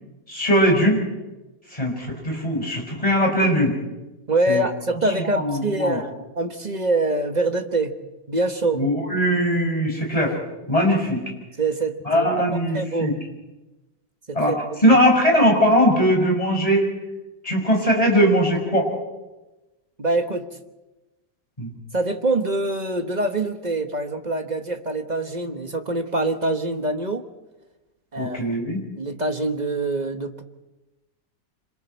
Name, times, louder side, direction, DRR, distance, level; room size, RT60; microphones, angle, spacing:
voice 1, 0.3-1.0 1.7-3.7 4.5-4.6 5.2-6.0 8.7-10.4 10.7-11.2 12.0-13.1 14.3-14.5 14.8-16.9 17.4-18.9 21.6-21.7 28.2-28.8, equal, 20° left, 1 dB, 5.8 m, -20 dB
voice 2, 4.3-7.9 8.3-8.8 11.6-13.2 14.3-14.6 14.8-15.0 20.0-20.5 21.9-27.3 28.1-28.4 29.0-30.4, right 2 dB, 30° right, 6 dB, 1.0 m, -25 dB
27.0 x 26.5 x 4.5 m, 1.1 s
omnidirectional pair, 1.9 m